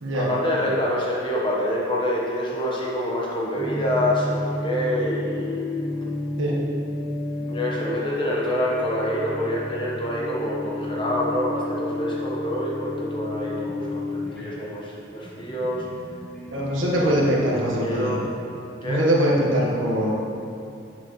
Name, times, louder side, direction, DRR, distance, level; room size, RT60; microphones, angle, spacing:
voice 1, 0.1-5.7 7.5-15.8 16.8-17.2 17.6-18.2 18.8-19.0, left 1 dB, 25° left, -4 dB, 1.1 m, -26 dB
sound 1, 3.5-18.7, left 2 dB, 5° left, 1.4 m, -32 dB
voice 2, 16.5-18.2 18.8-20.2, equal, 85° right, -3 dB, 1.3 m, -22 dB
7.7 x 7.3 x 3.1 m, 2.6 s
head